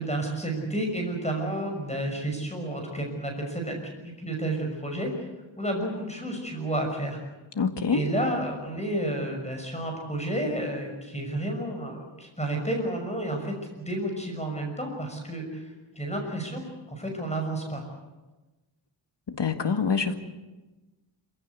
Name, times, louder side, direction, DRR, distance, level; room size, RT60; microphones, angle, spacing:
voice 1, 0.0-5.3 5.6-7.2 7.9-15.6 15.9-16.6 16.9-17.9, right 1 dB, 15° left, 2 dB, 6.0 m, -31 dB
voice 2, 7.6-8.0 19.3-20.2, left 5 dB, 65° left, 7 dB, 2.0 m, -25 dB
27.0 x 16.5 x 8.2 m, 1.1 s
wide cardioid pair, 80°, 46 cm